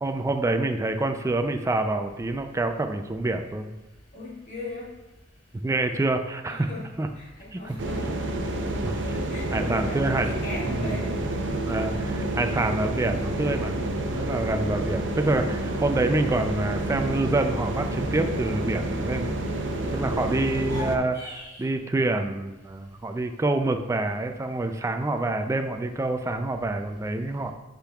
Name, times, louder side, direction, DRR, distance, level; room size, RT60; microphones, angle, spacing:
voice 1, 0.0-3.7 5.6-6.7 7.0-7.1 7.5-7.8 8.8-8.9 9.5-10.3 10.7-10.9 11.7-13.8 14.1-19.3 19.9-27.5, right 2 dB, 15° right, 6 dB, 0.3 m, -27 dB
voice 2, 4.1-4.9 6.5-6.9 7.2-8.1 9.1-11.1 19.9-20.3, left 1 dB, 45° left, -6 dB, 2.1 m, -38 dB
sound 1, 7.8-21.0, right 1 dB, 70° right, 0.7 m, -29 dB
sound 2, 20.5-21.7, left 3 dB, 15° left, 2.0 m, -39 dB
10.0 x 5.2 x 2.3 m, 1.0 s
head